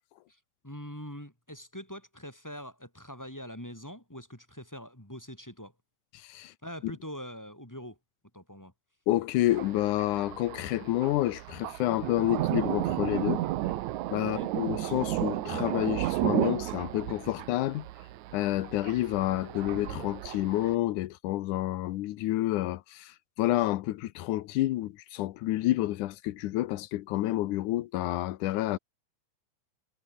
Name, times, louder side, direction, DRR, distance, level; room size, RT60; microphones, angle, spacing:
voice 1, 0.3-5.7 6.6-8.0 8.3-8.7 14.2-14.5, equal, 5° left, 4.2 m, -43 dB
voice 2, 6.1-6.5 9.1-13.4 14.1-17.9 18.3-28.8, left 15 dB, 90° left, 2.4 m, -29 dB
Thunder, 9.5-20.8, right 15 dB, 75° right, 2.3 m, -33 dB
omnidirectional pair, 3.4 m